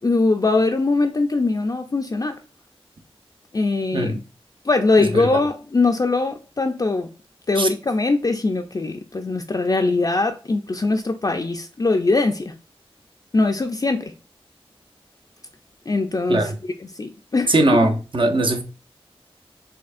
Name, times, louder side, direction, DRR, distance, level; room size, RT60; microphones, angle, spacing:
voice 1, 0.0-2.4 3.5-4.1 4.6-7.1 7.5-12.5 13.3-14.1 15.9-16.5 16.8-17.5, left 3 dB, 40° left, 0.4 m, -21 dB
voice 2, 5.0-5.3 7.6-7.7 16.3-16.6 17.5-18.6, right 2 dB, 55° right, 0.6 m, -20 dB
4.3 x 2.7 x 2.4 m
cardioid pair, 40°, 10 cm